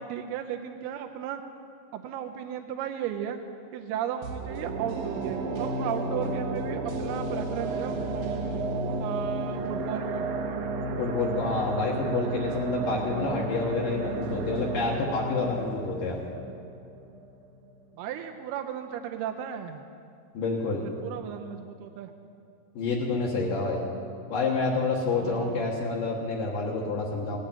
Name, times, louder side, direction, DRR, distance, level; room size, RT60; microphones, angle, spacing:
voice 1, 0.0-1.4 1.9-3.4 3.7-8.3 9.0-10.3 17.9-19.8 20.8-22.1 25.1-25.7, right 9 dB, 90° right, 5 dB, 2.7 m, -35 dB
sound 1, 4.2-17.3 17.6-17.7, right 3 dB, 75° right, 2.7 m, -32 dB
voice 2, 11.0-16.2 20.3-20.9 22.8-23.8 24.3-27.4, left 3 dB, 65° left, -4 dB, 2.9 m, -28 dB
18.0 x 8.6 x 8.8 m, 2.4 s
omnidirectional pair, 4.5 m